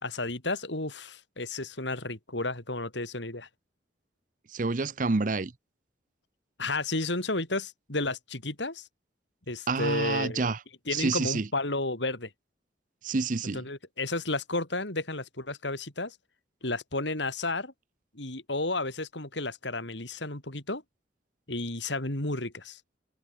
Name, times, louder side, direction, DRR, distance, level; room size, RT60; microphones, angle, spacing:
voice 1, 0.0-3.5 6.6-8.9 9.5-10.5 10.9-12.3 13.5-16.2 16.6-17.7 18.1-20.8 21.5-22.8, left 2 dB, 75° left, 5.0 m, -32 dB
voice 2, 4.5-5.5 9.7-10.6 10.9-11.5 13.0-13.6, right 3 dB, 45° right, 0.7 m, -28 dB
head